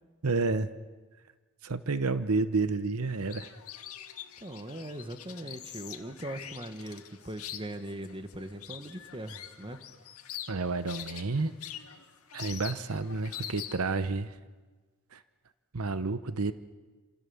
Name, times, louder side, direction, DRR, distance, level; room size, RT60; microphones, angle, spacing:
voice 1, 0.2-0.7 1.6-3.5 10.5-11.5 12.3-14.3 15.1-15.2 15.7-16.5, right 3 dB, 75° right, 12 dB, 0.9 m, -30 dB
sound 1, 3.1-14.0, left 10 dB, 80° left, 2.0 m, -44 dB
voice 2, 4.4-9.8, right 1 dB, 25° right, 8 dB, 1.5 m, -40 dB
28.0 x 27.5 x 7.2 m, 1.3 s
head